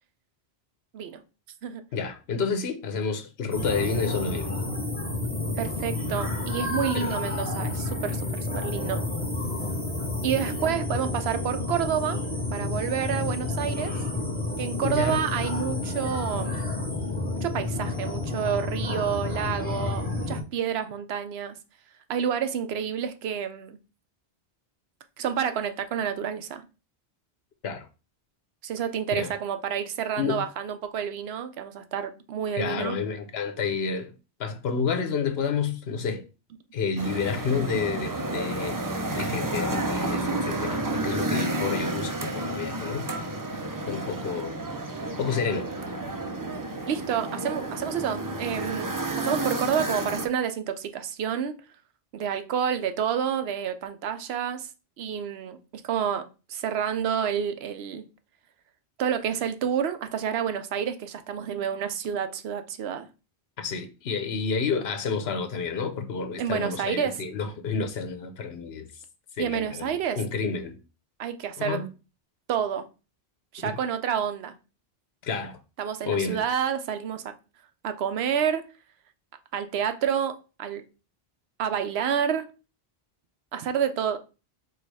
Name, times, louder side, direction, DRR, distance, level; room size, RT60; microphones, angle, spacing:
voice 1, 1.9-4.5 6.9-7.2 14.8-15.2 27.6-27.9 29.2-29.3 30.2-30.4 32.5-34.1 34.4-36.2 36.7-38.8 39.2-43.1 43.9-44.5 45.2-45.7 63.6-68.9 69.4-69.8 70.2-70.7 71.6-71.9 73.6-73.7 75.2-75.6 76.0-76.4, left 5 dB, 75° left, 1.0 m, -29 dB
sound 1, 3.5-20.4, left 2 dB, 10° left, 1.1 m, -30 dB
voice 2, 5.6-9.0 10.2-12.2 12.5-13.9 14.6-16.7 17.4-21.6 22.1-23.8 25.2-26.6 28.6-33.0 46.9-48.9 49.2-51.6 52.1-54.7 55.0-58.1 59.0-63.1 66.4-67.2 69.4-70.2 71.2-71.9 72.5-72.8 73.5-74.5 75.8-77.3 77.8-78.6 79.5-80.8 81.6-82.5 83.5-84.2, right 8 dB, 80° right, 0.9 m, -29 dB
sound 2, 37.0-50.3, right 2 dB, 25° right, 0.5 m, -31 dB
4.6 x 2.5 x 4.7 m
omnidirectional pair, 1.1 m